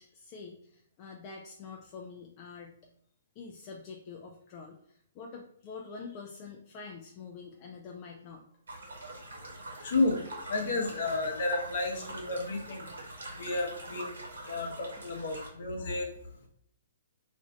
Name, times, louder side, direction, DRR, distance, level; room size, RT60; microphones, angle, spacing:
voice 1, 0.0-2.8 3.4-8.6, left 5 dB, 35° left, 1 dB, 0.4 m, -46 dB
sound 1, 8.7-15.5, right 2 dB, 75° right, 0.9 m, -44 dB
voice 2, 9.1-12.9 13.3-16.1, left 2 dB, 55° left, 1 dB, 0.8 m, -32 dB
2.5 x 2.5 x 3.2 m, 0.67 s
figure-of-eight pair, 125°, 0 cm